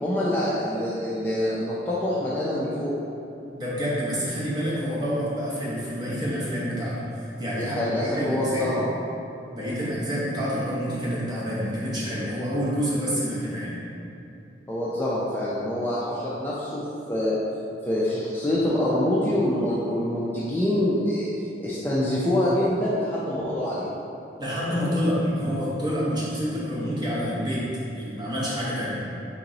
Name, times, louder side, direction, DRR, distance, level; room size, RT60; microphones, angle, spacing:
voice 1, 0.0-2.9 7.6-8.9 14.7-16.8 17.1-17.4 17.9-21.3 21.6-23.9, left 1 dB, 10° left, -8 dB, 0.3 m, -25 dB
voice 2, 3.5-8.7 9.5-13.8 24.4-29.0, equal, 20° right, -7 dB, 0.8 m, -28 dB
3.7 x 3.0 x 3.8 m, 2.8 s
head